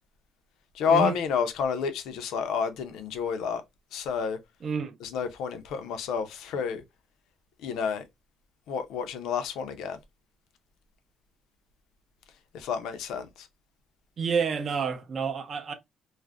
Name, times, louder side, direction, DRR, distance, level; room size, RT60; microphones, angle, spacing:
voice 1, 0.7-3.6 3.9-4.4 5.0-6.8 7.6-8.0 8.7-10.0 12.5-13.5, left 6 dB, 75° left, 0.5 m, -29 dB
voice 2, 4.6-5.0 14.2-15.7, right 6 dB, 35° right, 0.5 m, -29 dB
2.4 x 2.0 x 3.3 m
cardioid pair, 180°, 0 cm